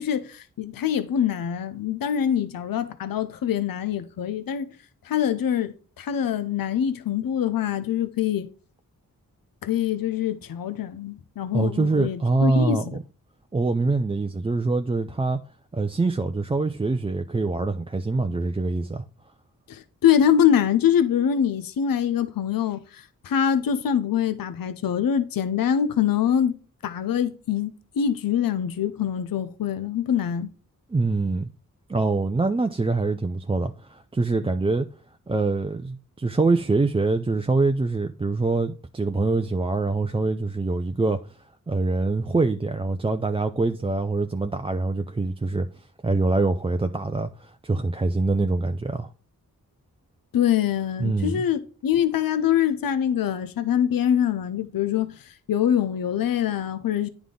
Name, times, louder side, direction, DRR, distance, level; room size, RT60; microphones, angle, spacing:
voice 1, 0.0-4.7 5.0-8.5 9.6-13.0 19.7-26.6 26.8-30.5 50.3-57.1, left 9 dB, 70° left, 0.6 m, -24 dB
voice 2, 11.5-13.0 13.5-15.4 15.7-19.0 30.9-31.5 31.9-34.9 35.3-41.2 41.7-49.1 51.0-51.4, right 3 dB, 15° right, 0.4 m, -24 dB
9.4 x 3.5 x 3.7 m
cardioid pair, 60°, 35 cm